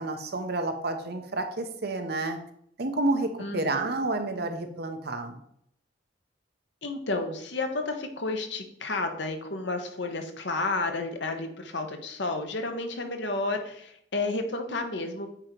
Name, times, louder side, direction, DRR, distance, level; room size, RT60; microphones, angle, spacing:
voice 1, 0.0-2.4 2.8-5.4, right 2 dB, 60° right, 6 dB, 0.9 m, -30 dB
voice 2, 3.4-3.9 6.8-15.3, left 3 dB, 70° left, 5 dB, 1.1 m, -31 dB
8.7 x 3.1 x 5.2 m, 0.70 s
head